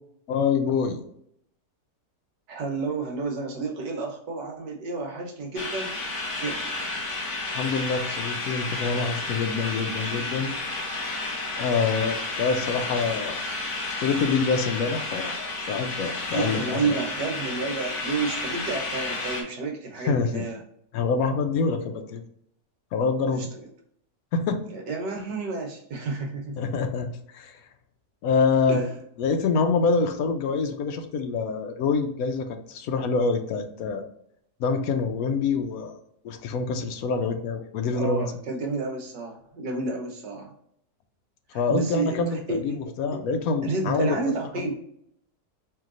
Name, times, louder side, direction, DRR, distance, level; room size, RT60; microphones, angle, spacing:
voice 1, 0.3-1.0 7.5-10.5 11.6-13.4 14.0-15.3 15.7-17.0 20.0-20.4 20.9-22.2 22.9-23.5 24.3-24.6 26.6-27.1 27.3-27.6 28.2-28.9 29.2-34.1 34.6-36.0 36.2-38.3 41.5-44.3, left 4 dB, 70° left, 6 dB, 0.9 m, -26 dB
voice 2, 2.5-5.9 6.4-6.6 16.3-20.6 23.3-23.5 24.7-26.6 28.7-28.9 37.9-40.5 41.7-42.9 43.6-44.8, right 3 dB, 80° right, 1 dB, 1.6 m, -30 dB
sound 1, 5.6-19.4, left 2 dB, 50° left, 1.3 m, -31 dB
4.6 x 3.3 x 2.4 m, 0.71 s
omnidirectional pair, 1.9 m